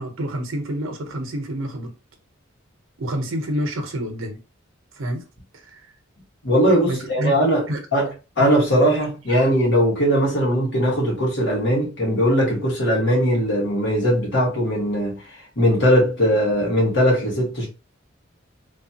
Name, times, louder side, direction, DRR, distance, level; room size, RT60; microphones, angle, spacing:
voice 1, 0.0-1.9 3.0-4.4 5.0-5.2 5.7-5.9 6.8-7.8, equal, 85° right, 0.8 m, -28 dB
voice 2, 6.4-8.1 8.4-15.2 15.5-17.7, equal, 65° left, 1.6 m, -19 dB
3.2 x 2.3 x 2.8 m
head